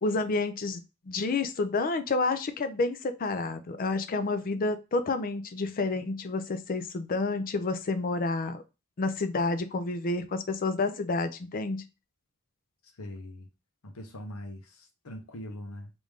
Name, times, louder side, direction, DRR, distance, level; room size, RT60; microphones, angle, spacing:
voice 1, 0.0-8.6 9.0-11.8, left 3 dB, 40° left, 0.4 m, -29 dB
voice 2, 12.8-13.5 13.8-15.9, left 1 dB, 70° left, 0.8 m, -42 dB
3.2 x 2.6 x 3.5 m
head